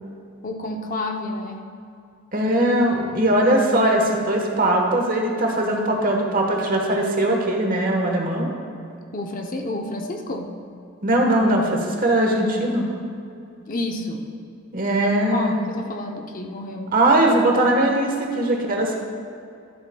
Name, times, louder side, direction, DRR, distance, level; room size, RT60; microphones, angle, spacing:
voice 1, 0.4-1.6 9.1-10.5 13.7-14.3 15.3-16.9, left 2 dB, 40° left, 2 dB, 0.7 m, -30 dB
voice 2, 2.3-8.5 11.0-12.9 14.7-15.5 16.9-19.0, right 1 dB, 40° right, 1 dB, 1.2 m, -20 dB
12.0 x 11.5 x 2.3 m, 2.5 s
head